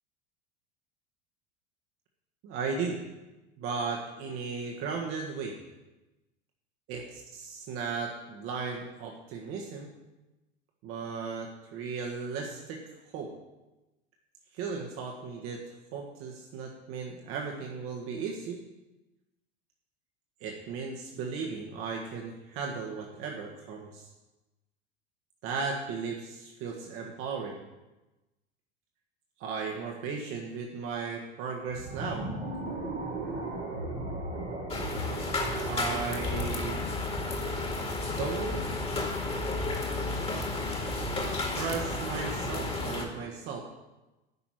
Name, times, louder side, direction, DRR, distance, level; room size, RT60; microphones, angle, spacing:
voice 1, 2.4-3.0 3.6-5.6 6.9-7.0 7.4-9.9 10.8-12.8 13.1-13.3 14.5-15.6 15.9-18.6 20.4-24.1 25.4-27.6 29.4-32.3 35.6-36.8 38.2-38.7 41.5-43.7, right 5 dB, 45° right, 1 dB, 1.7 m, -36 dB
sound 1, 31.7-36.9, right 2 dB, 80° right, 4.4 m, -37 dB
sound 2, 34.7-43.1, left 2 dB, 20° left, 2.1 m, -32 dB
11.0 x 5.9 x 8.8 m, 1.0 s
figure-of-eight pair, 80°, 32 cm